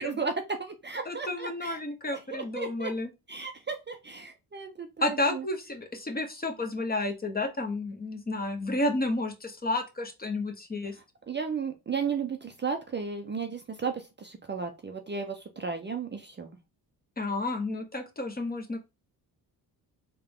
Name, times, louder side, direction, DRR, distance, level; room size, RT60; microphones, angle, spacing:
voice 1, 0.0-1.8 2.3-2.9 3.3-5.4 11.3-16.6, right 5 dB, 25° right, 5 dB, 0.5 m, -34 dB
voice 2, 1.0-3.1 5.0-11.0 17.2-18.8, left 2 dB, 20° left, 4 dB, 0.9 m, -31 dB
3.6 x 2.3 x 3.5 m, 0.26 s
supercardioid pair, 65°, 42 cm